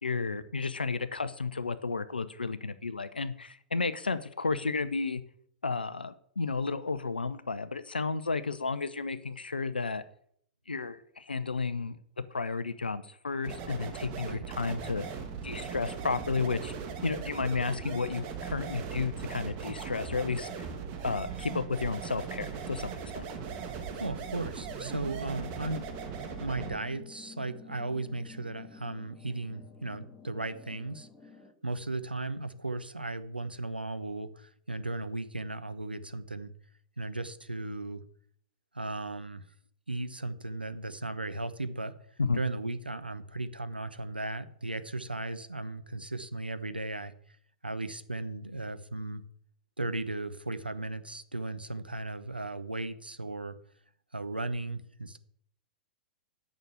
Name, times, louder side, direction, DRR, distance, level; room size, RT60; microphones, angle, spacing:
voice 1, 0.0-5.2 5.6-10.0 10.7-12.0 12.3-15.1 15.4-16.7 17.0-20.7 21.0-23.3 42.2-42.4, left 4 dB, 80° left, 13 dB, 0.7 m, -32 dB
sound 1, 13.4-26.8, right 6 dB, 40° right, 1.9 m, -39 dB
sound 2, 14.8-31.5, left 4 dB, 5° left, 1.7 m, -53 dB
voice 2, 23.9-25.9 26.4-31.1 31.6-36.5 37.0-38.0 38.7-39.4 39.9-41.9 42.3-47.1 47.6-49.2 49.8-53.6 54.1-55.2, right 2 dB, 85° right, 11 dB, 0.8 m, -36 dB
9.0 x 6.4 x 8.0 m, 0.66 s
figure-of-eight pair, 105°, 5 cm